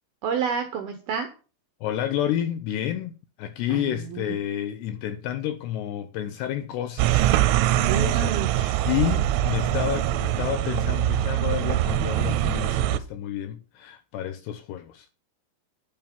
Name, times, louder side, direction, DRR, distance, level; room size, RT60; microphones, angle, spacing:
voice 1, 0.2-1.3 3.7-4.4 7.9-8.5, right 6 dB, 75° right, 2.3 m, -29 dB
voice 2, 1.8-15.1, left 11 dB, 85° left, 2.4 m, -30 dB
sound 1, 7.0-13.0, right 14 dB, 90° right, 3.3 m, -23 dB
10.5 x 7.5 x 5.9 m
omnidirectional pair, 5.7 m